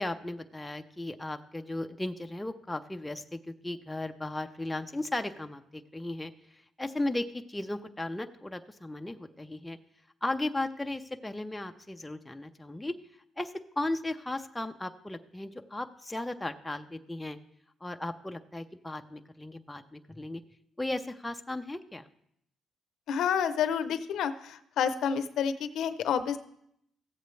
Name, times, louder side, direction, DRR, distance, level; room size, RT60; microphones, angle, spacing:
voice 1, 0.0-6.3 6.8-9.8 10.2-12.9 13.4-17.4 17.8-20.4 20.8-22.1, left 2 dB, 10° left, 6 dB, 0.5 m, -36 dB
voice 2, 23.1-26.4, left 8 dB, 75° left, 10 dB, 0.6 m, -29 dB
15.0 x 7.9 x 3.2 m, 0.72 s
cardioid pair, 110°, 0 cm